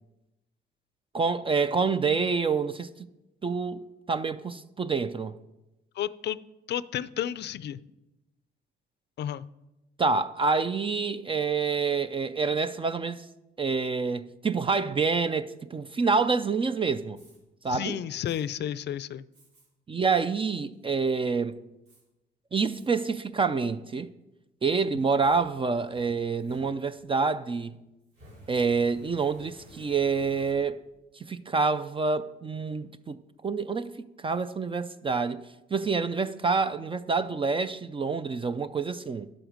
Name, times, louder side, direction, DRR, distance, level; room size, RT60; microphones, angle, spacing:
voice 1, 1.1-3.1 3.4-5.3 10.0-13.2 13.6-17.2 17.6-18.0 19.9-21.6 22.5-24.1 24.6-27.8 28.5-30.8 31.2-35.4 35.7-39.3, right 4 dB, 25° right, 0.4 m, -27 dB
voice 2, 6.0-6.4 6.7-7.8 9.2-9.4 17.7-19.3, left 10 dB, 60° left, 0.4 m, -32 dB
Fire, 17.2-17.4 18.2-18.4 19.3-19.7 20.1-20.2 20.7-21.2 21.9-22.0 22.7-23.1 23.5-23.6 24.7-27.2 28.1-30.9, equal, 85° right, 4.7 m, -54 dB
11.0 x 7.8 x 5.1 m
cardioid pair, 90°, 20 cm